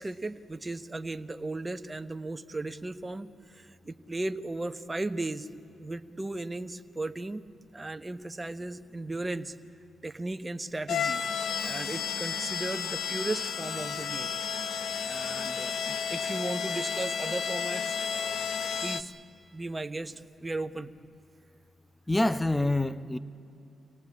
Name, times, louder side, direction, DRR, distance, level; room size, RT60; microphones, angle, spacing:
voice 1, 0.0-5.5 5.8-7.4 7.7-9.5 10.0-11.2 11.6-14.3 15.1-18.5 18.8-19.1 19.5-20.9, right 2 dB, 25° right, 1.0 m, -36 dB
sound 1, 10.9-19.0, left 7 dB, 70° left, 0.8 m, -32 dB
voice 2, 22.1-23.2, left 2 dB, 15° left, 0.8 m, -26 dB
25.5 x 17.5 x 8.4 m
supercardioid pair, 50°, 0 cm